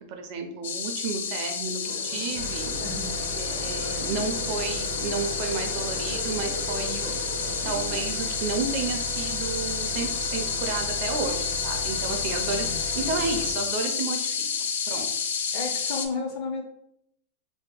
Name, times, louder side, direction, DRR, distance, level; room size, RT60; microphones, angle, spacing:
voice 1, 0.1-2.7 3.4-7.1 7.6-14.5 14.9-15.1, right 4 dB, 40° right, 4 dB, 0.4 m, -32 dB
sound 1, 0.6-16.1, left 6 dB, 85° left, 0.4 m, -30 dB
sound 2, 1.8-8.0, left 1 dB, 60° left, 0.9 m, -40 dB
sound 3, 2.3-13.5, right 1 dB, 85° right, 0.7 m, -37 dB
voice 2, 2.8-3.2 12.4-12.8 15.5-16.6, left 3 dB, 35° left, 3 dB, 0.5 m, -33 dB
2.7 x 2.1 x 3.8 m, 0.73 s
supercardioid pair, 175°, 0 cm